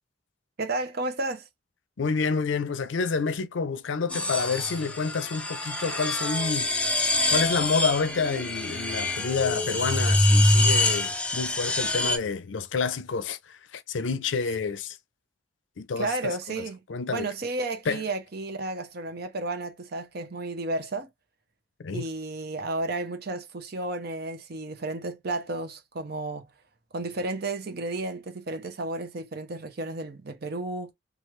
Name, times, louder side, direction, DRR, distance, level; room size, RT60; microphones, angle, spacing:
voice 1, 0.6-1.4 16.0-16.8 17.1-21.1 21.9-26.5 26.9-30.9, right 2 dB, 55° right, 0.7 m, -32 dB
voice 2, 2.0-6.7 7.3-15.0 15.8-16.6 16.9-17.3 17.9-18.0 21.8-22.0, left 5 dB, 75° left, 0.5 m, -29 dB
sound 1, 4.1-12.2, left 1 dB, 5° left, 0.5 m, -25 dB
3.1 x 2.4 x 3.1 m
head